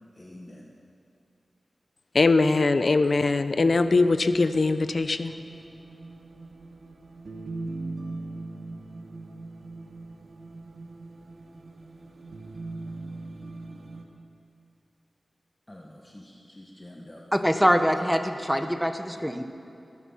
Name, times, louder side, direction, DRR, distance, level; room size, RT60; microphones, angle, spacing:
voice 1, 0.1-0.7 15.7-17.4, left 1 dB, 20° left, 1.3 m, -47 dB
voice 2, 2.1-5.3, left 3 dB, 60° left, 0.6 m, -21 dB
sound 1, 3.6-14.0, right 2 dB, 70° right, 1.4 m, -41 dB
voice 3, 17.3-19.4, equal, ahead, 1.0 m, -24 dB
19.0 x 12.0 x 5.7 m
wide cardioid pair, 75°, 0 cm